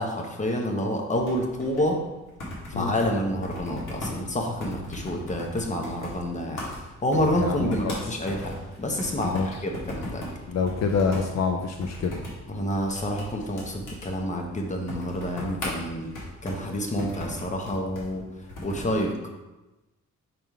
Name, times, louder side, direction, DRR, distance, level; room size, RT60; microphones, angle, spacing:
voice 1, 0.0-2.0 2.7-10.3 12.5-16.1 16.4-19.2, left 1 dB, 25° left, 2 dB, 1.0 m, -28 dB
sound 1, 1.1-19.0, left 1 dB, 85° left, 1.9 m, -39 dB
voice 2, 7.4-7.9 9.3-9.5 10.5-12.2, left 5 dB, 60° left, 4 dB, 0.5 m, -26 dB
6.0 x 3.7 x 4.7 m, 1.0 s
cardioid pair, 125°, 30 cm